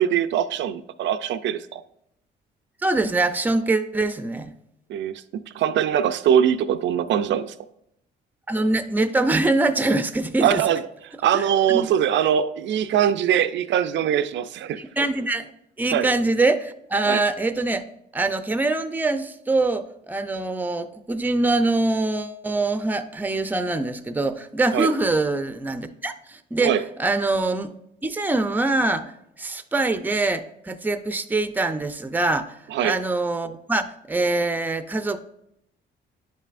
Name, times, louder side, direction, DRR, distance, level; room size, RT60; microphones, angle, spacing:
voice 1, 0.0-1.8 4.9-5.1 5.5-7.5 10.4-10.8 11.2-14.8 15.9-16.1 17.1-17.2 24.7-24.9 26.6-26.8 32.7-32.9, right 9 dB, 70° right, 11 dB, 0.4 m, -22 dB
voice 2, 2.8-4.5 8.5-10.6 11.3-11.9 14.8-15.5 15.8-17.8 18.1-26.7 27.0-27.7 28.0-29.1 29.4-32.6 32.8-35.2, right 2 dB, 10° right, 10 dB, 0.5 m, -24 dB
10.5 x 5.4 x 2.5 m, 0.78 s
cardioid pair, 90°, 20 cm